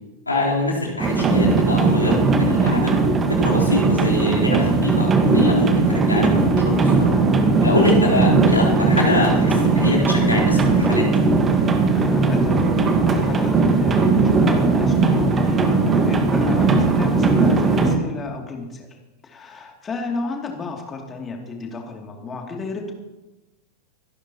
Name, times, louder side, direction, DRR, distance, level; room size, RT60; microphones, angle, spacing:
voice 1, 0.3-2.9 3.3-7.1 7.6-11.1, left 2 dB, 80° left, -5 dB, 3.9 m, -24 dB
sound 1, 1.0-18.0, right 3 dB, 20° right, 1.6 m, -18 dB
voice 2, 11.9-12.7 13.1-18.9 19.2-22.9, left 3 dB, 20° left, 1 dB, 2.7 m, -32 dB
25.5 x 11.5 x 3.0 m, 1.1 s
figure-of-eight pair, 90°, 0 cm